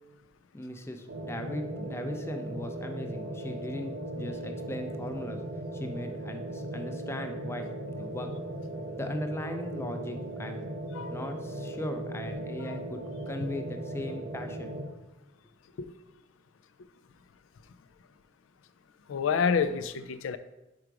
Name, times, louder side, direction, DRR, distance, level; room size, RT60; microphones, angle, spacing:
voice 1, 0.5-5.4 5.7-8.3 8.9-10.6 11.1-13.0 13.3-14.8, left 1 dB, 15° left, 6 dB, 0.4 m, -38 dB
sound 1, 1.1-14.8, right 1 dB, 90° right, 1.0 m, -37 dB
voice 2, 19.1-20.4, left 6 dB, 85° left, 11 dB, 0.4 m, -28 dB
4.9 x 4.7 x 4.6 m, 0.99 s
head